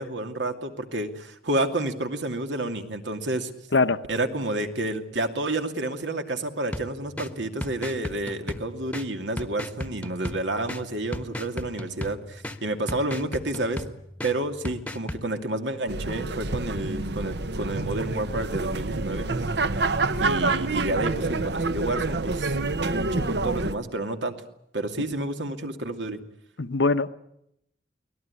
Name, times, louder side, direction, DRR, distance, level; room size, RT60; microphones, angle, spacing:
voice 1, 0.0-3.5 4.1-13.8 14.2-19.3 20.2-24.4 24.7-26.2, right 2 dB, 80° right, 2.6 m, -30 dB
voice 2, 3.7-4.0 26.6-27.1, left 3 dB, 85° left, 1.1 m, -22 dB
sound 1, 6.7-15.2, left 1 dB, 10° left, 1.1 m, -37 dB
sound 2, 15.9-23.7, right 3 dB, 65° right, 1.0 m, -27 dB
24.0 x 18.5 x 9.9 m
head